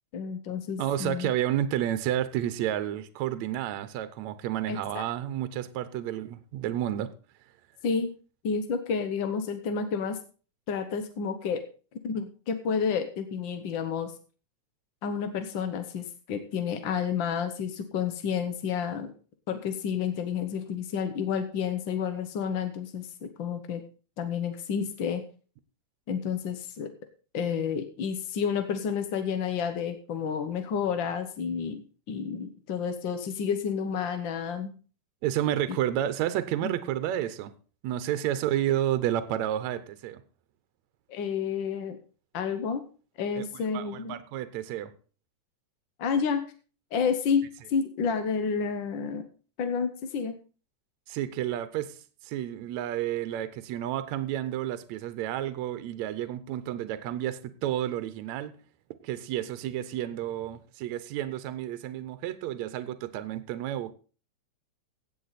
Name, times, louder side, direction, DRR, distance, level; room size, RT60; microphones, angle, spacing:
voice 1, 0.1-1.3 4.7-5.0 7.8-8.1 8.4-10.2 10.7-11.6 12.0-14.1 15.0-19.1 19.5-23.8 24.2-25.2 26.1-26.9 27.3-34.7 35.7-35.8 36.6-36.7 41.1-42.0 42.3-42.8 43.2-44.2 46.0-46.4 46.9-49.2 49.6-50.3, left 6 dB, 60° left, 1.2 m, -30 dB
voice 2, 0.8-7.1 35.2-37.5 37.8-40.2 43.4-44.9 51.1-52.0 52.2-58.5 59.0-63.9, right 12 dB, 75° right, 2.1 m, -31 dB
16.5 x 8.3 x 4.1 m
omnidirectional pair, 3.4 m